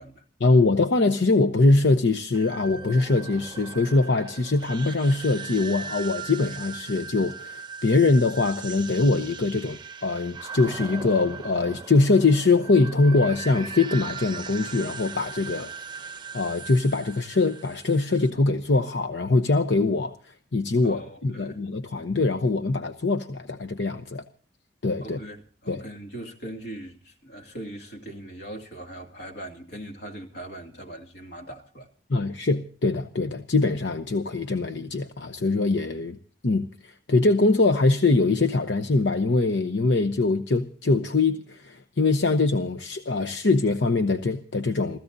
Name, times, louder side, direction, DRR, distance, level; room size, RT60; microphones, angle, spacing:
voice 1, 0.4-15.7 16.3-24.2 24.8-25.2 25.7-25.8 32.1-36.2 36.4-45.0, left 3 dB, 85° left, 0.8 m, -23 dB
sound 1, 2.3-18.3, right 5 dB, 25° right, 0.6 m, -39 dB
voice 2, 20.8-21.6 25.0-31.9, right 1 dB, 65° left, 2.4 m, -40 dB
30.0 x 14.5 x 2.7 m
head